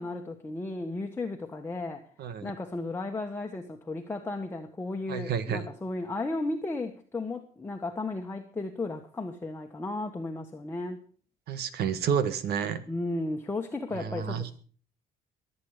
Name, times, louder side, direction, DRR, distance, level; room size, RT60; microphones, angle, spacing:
voice 1, 0.0-2.0 2.4-11.0 12.9-14.5, left 2 dB, 15° left, 2 dB, 1.5 m, -34 dB
voice 2, 2.2-2.5 5.1-5.7 11.5-12.8 13.9-14.4, right 7 dB, 70° right, 12 dB, 1.7 m, -30 dB
23.0 x 8.7 x 5.0 m, 0.42 s
cardioid pair, 110°, 17 cm